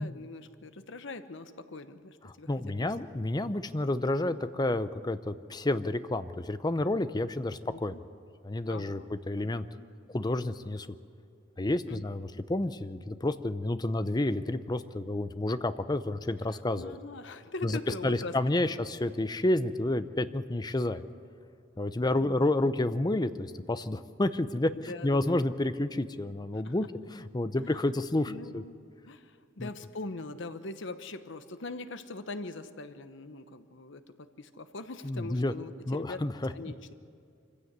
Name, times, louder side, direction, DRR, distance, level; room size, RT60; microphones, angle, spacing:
voice 1, 0.0-2.9 7.6-8.0 8.7-9.1 9.4-9.5 11.9-12.0 16.5-18.4 18.7-18.8 22.2-22.7 24.7-25.4 26.6-26.7 27.6-27.9 28.3-28.8 29.1-36.2 36.5-36.9, left 3 dB, 60° left, 10 dB, 1.0 m, -42 dB
voice 2, 2.5-7.9 8.4-9.0 9.3-9.7 10.1-10.9 11.6-17.0 17.6-21.0 21.8-26.8 27.1-28.6 29.6-29.7 35.0-35.5 35.9-36.5, left 1 dB, 20° left, 12 dB, 0.6 m, -30 dB
25.0 x 15.5 x 8.1 m, 2.4 s
head